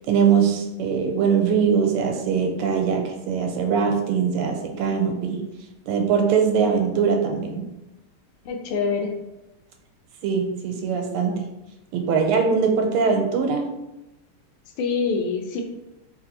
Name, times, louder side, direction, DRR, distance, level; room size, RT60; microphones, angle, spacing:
voice 1, 0.1-5.5 5.9-7.7 10.2-11.5 11.9-13.7, right 6 dB, 85° right, 3 dB, 1.6 m, -22 dB
voice 2, 8.4-9.1 14.7-15.6, left 4 dB, 80° left, 3 dB, 1.5 m, -25 dB
3.3 x 3.1 x 4.1 m, 0.93 s
omnidirectional pair, 2.3 m